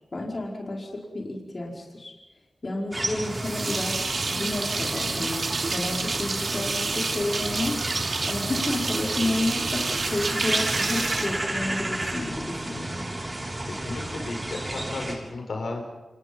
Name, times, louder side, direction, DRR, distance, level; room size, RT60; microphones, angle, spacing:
voice 1, 0.1-2.1 2.6-5.4 5.7-7.8 8.2-13.1, left 2 dB, 45° left, -1 dB, 5.2 m, -31 dB
sound 1, 2.9-15.2, right 1 dB, 30° right, 7.4 m, -32 dB
sound 2, 3.3-12.1, right 4 dB, 65° right, 2.9 m, -29 dB
voice 2, 13.7-15.8, left 2 dB, 80° left, 2 dB, 6.3 m, -34 dB
30.0 x 28.0 x 5.6 m, 1.1 s
wide cardioid pair, 75°, 0 cm